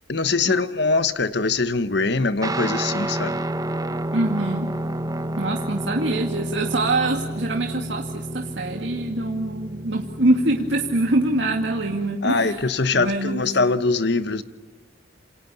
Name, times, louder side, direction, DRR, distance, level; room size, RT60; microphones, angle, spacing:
voice 1, 0.1-3.4 12.2-14.4, left 3 dB, 60° left, 1.3 m, -22 dB
Guitar, 2.4-12.2, right 1 dB, 20° right, 1.1 m, -30 dB
voice 2, 4.1-4.7 5.4-12.6 12.9-13.5, right 2 dB, 70° right, 2.3 m, -24 dB
28.0 x 28.0 x 7.0 m
head